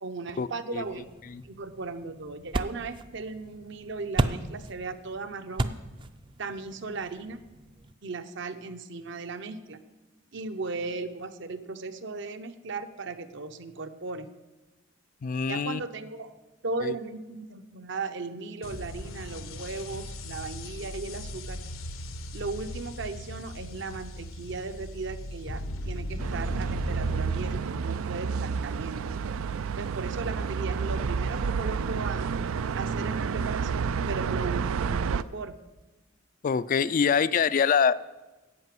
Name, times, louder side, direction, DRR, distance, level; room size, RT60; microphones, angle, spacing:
voice 1, 0.0-1.1 1.4-5.7 6.4-7.4 8.0-9.8 10.3-14.3 15.5-16.3 16.6-21.6 22.3-29.1 29.8-32.3 32.7-35.6, right 3 dB, 60° right, 10 dB, 0.8 m, -37 dB
sound 1, 0.8-7.9, right 2 dB, 25° right, 0.4 m, -35 dB
voice 2, 15.2-15.8 16.8-16.9 36.4-37.9, left 6 dB, 40° left, 16 dB, 0.3 m, -24 dB
sound 2, 18.6-27.6, left 1 dB, 85° left, 1.0 m, -37 dB
sound 3, 26.2-35.2, right 5 dB, 90° right, 0.4 m, -30 dB
11.0 x 8.2 x 7.6 m, 1.1 s
head